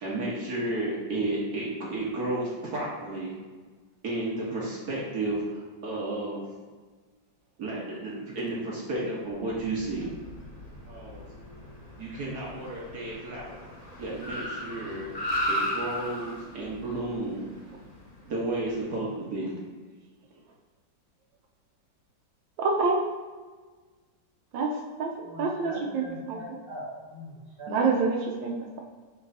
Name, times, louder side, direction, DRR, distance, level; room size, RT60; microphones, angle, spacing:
voice 1, 0.0-3.3 4.0-6.4 7.6-10.1 10.9-11.3 12.0-13.6 14.0-15.1 15.5-17.5 18.3-19.5, right 2 dB, 60° right, -5 dB, 1.6 m, -32 dB
Car, 9.4-18.9, equal, 30° left, 0.8 m, -36 dB
voice 2, 22.6-23.0 24.5-26.4 27.7-28.8, right 4 dB, 85° right, 0 dB, 1.4 m, -27 dB
voice 3, 25.2-27.9, equal, 30° right, -7 dB, 2.0 m, -42 dB
6.3 x 6.1 x 2.7 m, 1.4 s
omnidirectional pair, 2.0 m